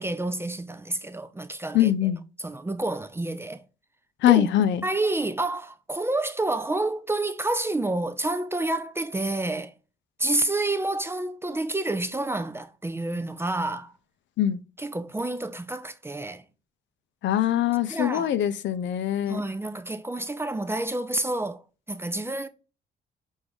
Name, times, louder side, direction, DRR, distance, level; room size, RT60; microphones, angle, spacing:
voice 1, 0.0-1.9 2.4-3.6 4.3-4.5 4.8-9.7 10.2-13.9 14.8-16.4 17.9-18.3 19.2-21.6 21.9-22.5, right 2 dB, 10° right, 0.3 m, -29 dB
voice 2, 1.7-2.2 4.2-4.8 14.4-14.6 17.2-19.4, left 12 dB, 70° left, 0.4 m, -22 dB
4.6 x 2.6 x 3.4 m
cardioid pair, 90°, 20 cm